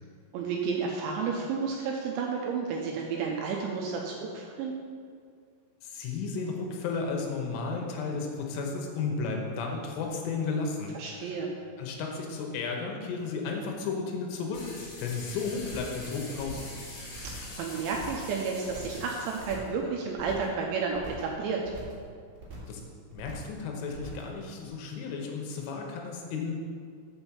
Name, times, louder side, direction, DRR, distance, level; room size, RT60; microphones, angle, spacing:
voice 1, 0.3-4.7 10.9-11.5 17.2-21.6, right 5 dB, 80° right, 0 dB, 2.8 m, -31 dB
voice 2, 5.8-11.3 11.8-14.7 15.0-16.7 22.7-22.8 23.1-26.5, left 4 dB, 80° left, 1 dB, 3.3 m, -33 dB
sound 1, 14.5-19.5, left 2 dB, 60° left, 3.6 m, -44 dB
sound 2, 15.6-16.0 16.3-16.8 17.1-17.5 17.8-18.3 18.6-19.0 19.3-19.8 20.1-20.6 20.9-21.3 21.6-22.0 22.3-22.8 23.1-23.6 23.9-24.3 24.6-24.7, right 3 dB, 45° right, 3.5 m, -44 dB
7.0 x 6.3 x 7.2 m, 2.1 s
omnidirectional pair, 5.9 m